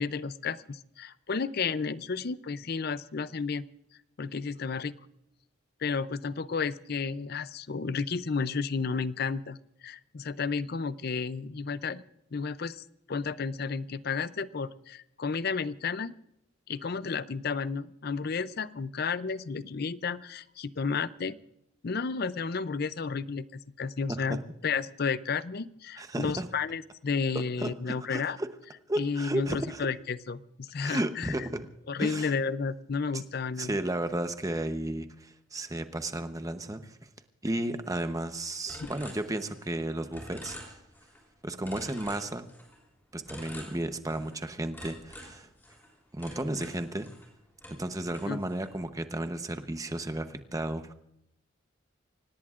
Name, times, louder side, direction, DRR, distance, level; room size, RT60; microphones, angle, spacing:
voice 1, 0.0-3.7 4.2-4.9 5.8-12.0 12.3-16.2 16.7-21.4 21.8-28.4 29.0-31.3 31.9-33.7 38.8-38.9 48.3-48.4, left 5 dB, 50° left, 16 dB, 0.5 m, -32 dB
voice 2, 26.0-26.5 27.6-28.5 28.9-29.9 30.8-31.7 32.0-32.3 33.1-33.2 33.6-37.0 37.4-40.8 41.4-42.5 43.1-45.5 46.1-47.1 47.7-50.9, right 1 dB, 15° right, 8 dB, 0.9 m, -33 dB
sound 1, 38.7-39.8 40.1-41.2 41.6-42.8 43.3-44.4 44.7-47.3 47.6-48.8, left 1 dB, 10° left, 3.3 m, -47 dB
25.5 x 18.5 x 2.5 m, 0.79 s
head